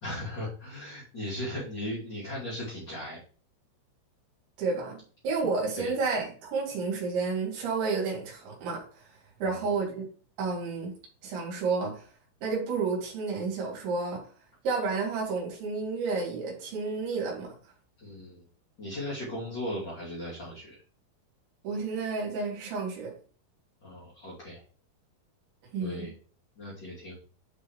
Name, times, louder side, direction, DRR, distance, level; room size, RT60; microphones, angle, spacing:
voice 1, 0.0-3.2 5.8-5.9 9.4-9.7 18.0-18.4 18.8-20.8 23.8-24.6 25.8-26.1 26.6-27.1, left 1 dB, 30° left, -8 dB, 2.4 m, -37 dB
voice 2, 4.6-5.0 5.2-9.1 9.4-10.0 10.4-10.9 11.2-12.0 12.4-14.2 14.6-17.5 21.6-23.1 25.7-26.1, right 4 dB, 70° right, -2 dB, 4.8 m, -31 dB
12.0 x 5.6 x 3.2 m, 0.41 s
omnidirectional pair, 5.7 m